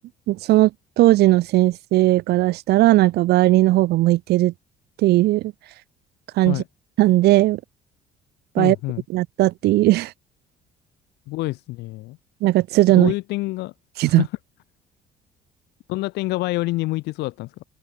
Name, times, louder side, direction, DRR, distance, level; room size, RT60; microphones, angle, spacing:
voice 1, 0.3-0.7 1.0-4.5 5.0-5.5 6.4-6.6 7.0-7.6 8.5-8.8 9.1-10.1 12.4-13.1 14.0-14.2, right 17 dB, 75° right, 0.7 m, -17 dB
voice 2, 8.6-9.0 11.3-12.2 13.0-13.7 14.0-14.3 15.9-17.6, left 20 dB, 85° left, 0.9 m, -27 dB
open air
cardioid pair, 110°, 17 cm